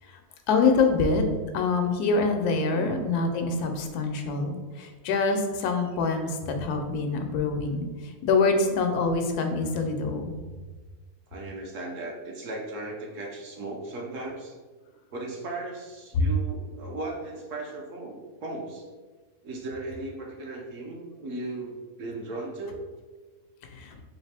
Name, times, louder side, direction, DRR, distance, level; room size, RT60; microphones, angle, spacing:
voice 1, 0.5-1.3 1.5-10.3 16.1-16.3 23.6-24.0, left 4 dB, 90° left, 5 dB, 1.1 m, -25 dB
voice 2, 2.7-3.0 11.3-14.6 15.1-18.8 19.4-22.8, right 2 dB, 65° right, 0 dB, 1.0 m, -37 dB
4.1 x 2.8 x 3.3 m, 1.3 s
omnidirectional pair, 1.6 m